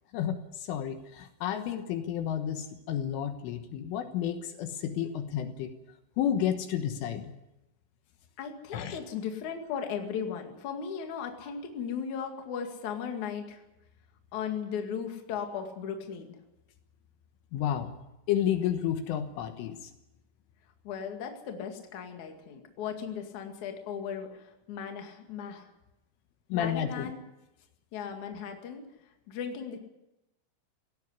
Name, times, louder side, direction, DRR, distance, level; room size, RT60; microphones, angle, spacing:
voice 1, 0.1-5.7 6.2-7.3 8.7-9.0 17.5-17.9 18.3-19.9 26.5-27.1, left 9 dB, 75° left, 7 dB, 3.7 m, -31 dB
voice 2, 8.4-13.6 14.3-16.3 20.8-25.7 26.5-27.2 27.9-28.8 29.3-29.8, left 7 dB, 45° left, 4 dB, 2.9 m, -37 dB
17.5 x 17.5 x 9.7 m, 0.92 s
omnidirectional pair, 5.9 m